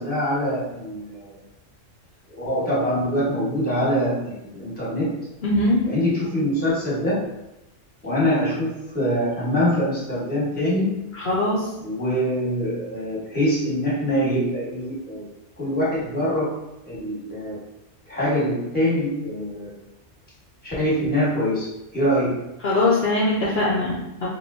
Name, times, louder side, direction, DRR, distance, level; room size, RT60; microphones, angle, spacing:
voice 1, 0.0-1.4 2.3-5.1 5.9-7.2 8.0-10.9 11.8-15.2 15.6-16.5 16.9-17.6 18.1-19.7 20.6-21.7 21.9-22.3, equal, 10° left, -7 dB, 1.2 m, -24 dB
voice 2, 5.4-5.8 11.3-11.7 22.6-24.0, left 2 dB, 60° left, -5 dB, 0.8 m, -21 dB
3.5 x 3.0 x 2.6 m, 0.92 s
omnidirectional pair, 1.3 m